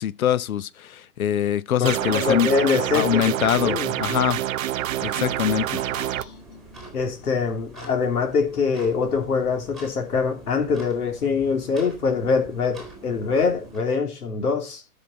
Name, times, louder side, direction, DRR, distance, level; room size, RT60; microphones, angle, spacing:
voice 1, 0.0-2.5 2.9-4.4 5.0-5.8, left 10 dB, 70° left, 0.8 m, -23 dB
voice 2, 1.8-3.9 6.0-6.3 6.9-14.8, left 5 dB, 85° left, 2.9 m, -24 dB
sound 1, 1.9-6.2, right 12 dB, 60° right, 0.5 m, -27 dB
sound 2, 4.8-13.8, right 2 dB, ahead, 2.2 m, -45 dB
12.5 x 5.8 x 4.3 m
hypercardioid pair, 165°, 44 cm